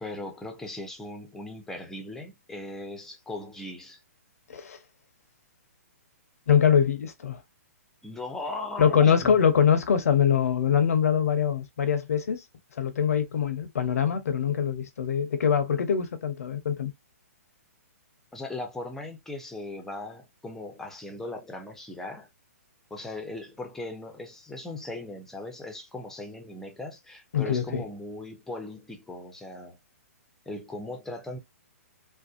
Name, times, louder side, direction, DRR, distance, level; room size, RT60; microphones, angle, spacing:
voice 1, 0.0-4.0 8.0-9.4 18.3-22.3 22.9-29.8 30.5-31.4, left 2 dB, 5° left, 0.6 m, -38 dB
voice 2, 6.5-7.4 8.8-12.4 12.8-16.9 27.3-27.8, left 7 dB, 70° left, 0.7 m, -23 dB
2.6 x 2.1 x 2.4 m
hypercardioid pair, 135°, 8 cm